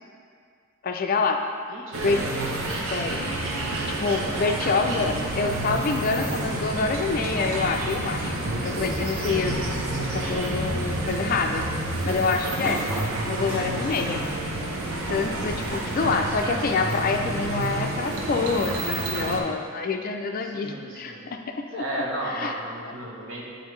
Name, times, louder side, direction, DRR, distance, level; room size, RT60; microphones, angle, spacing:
voice 1, 0.8-1.4 2.0-2.2 2.9-3.2 3.9-8.4 8.6-9.6 9.9-11.7 12.0-12.8 13.3-14.2 15.1-22.0 22.3-22.5, left 4 dB, 40° left, 4 dB, 0.4 m, -26 dB
voice 2, 1.7-2.2 4.9-5.6 12.4-12.8 15.9-16.4 20.4-21.3 21.7-23.4, right 1 dB, 60° right, -3 dB, 1.1 m, -35 dB
sound 1, 1.9-19.4, right 2 dB, 80° right, 0.8 m, -29 dB
sound 2, 5.0-11.4, equal, 35° right, 1.5 m, -38 dB
sound 3, 10.1-15.7, equal, 10° right, 1.4 m, -40 dB
9.1 x 3.9 x 3.1 m, 2.2 s
head